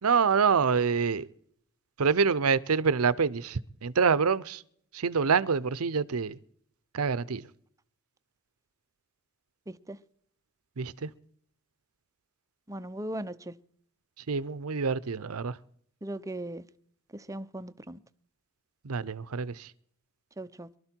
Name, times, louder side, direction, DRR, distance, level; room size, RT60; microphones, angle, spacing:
voice 1, 0.0-1.3 2.0-4.6 4.9-6.4 6.9-7.5 10.8-11.1 14.3-15.6 18.8-19.7, right 5 dB, 90° right, 0.7 m, -26 dB
voice 2, 9.7-10.0 12.7-13.5 16.0-16.6 17.1-18.0 20.4-20.7, right 1 dB, 15° right, 0.6 m, -38 dB
23.0 x 12.5 x 4.5 m
head